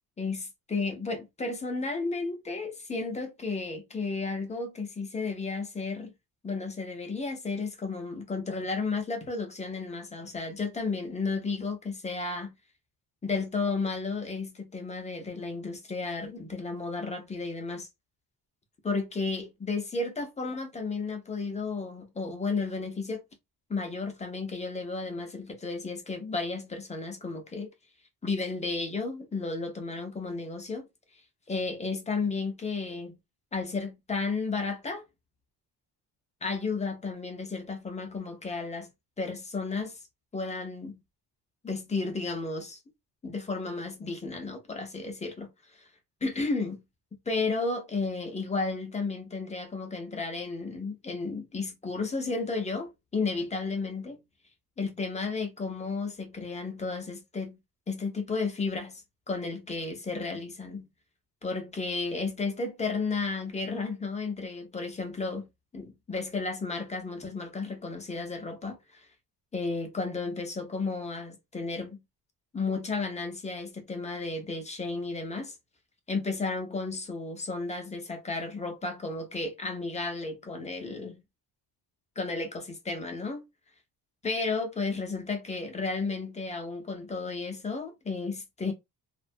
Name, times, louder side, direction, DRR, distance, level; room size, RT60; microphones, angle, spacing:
voice 1, 0.2-6.1 6.4-12.6 13.2-17.9 18.8-23.2 23.7-27.7 28.2-30.9 31.5-33.2 33.5-35.0 36.4-38.9 39.2-40.0 40.3-41.0 41.6-42.8 43.2-45.8 46.2-46.8 47.3-54.2 54.8-57.6 57.9-60.9 61.4-69.0 69.5-72.0 72.5-75.5 76.1-81.2 82.2-83.5 84.2-88.7, left 3 dB, 15° left, 0.5 m, -33 dB
2.5 x 2.2 x 2.5 m
cardioid pair, 150°, 41 cm